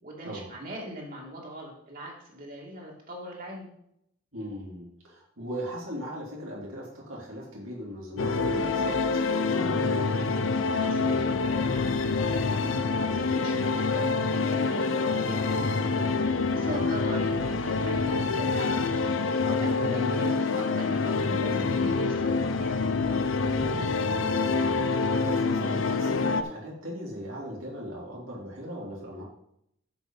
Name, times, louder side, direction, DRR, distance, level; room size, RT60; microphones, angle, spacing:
voice 1, 0.0-3.7 10.7-16.0 16.5-19.0 19.5-22.7, equal, 45° right, -2 dB, 2.5 m, -40 dB
voice 2, 4.3-10.1 16.6-16.8 23.3-29.2, equal, 90° right, -4 dB, 3.0 m, -39 dB
sound 1, 8.2-26.4, left 4 dB, 70° left, 0.6 m, -26 dB
7.3 x 7.1 x 5.5 m, 0.75 s
head